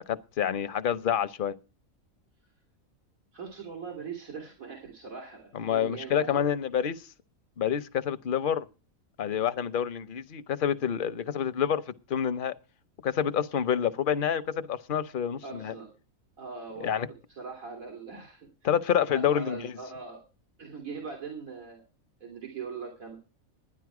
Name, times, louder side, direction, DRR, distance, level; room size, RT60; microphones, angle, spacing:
voice 1, 0.1-1.5 5.5-7.0 7.6-8.7 9.2-12.5 13.0-15.7 16.8-17.1 18.6-19.7, left 8 dB, 45° left, 0.8 m, -28 dB
voice 2, 3.3-6.4 15.4-15.9 16.4-17.0 17.3-18.7 19.1-20.2 20.6-21.8 22.2-23.2, right 5 dB, 80° right, 3.0 m, -41 dB
12.0 x 10.0 x 4.8 m
omnidirectional pair, 1.4 m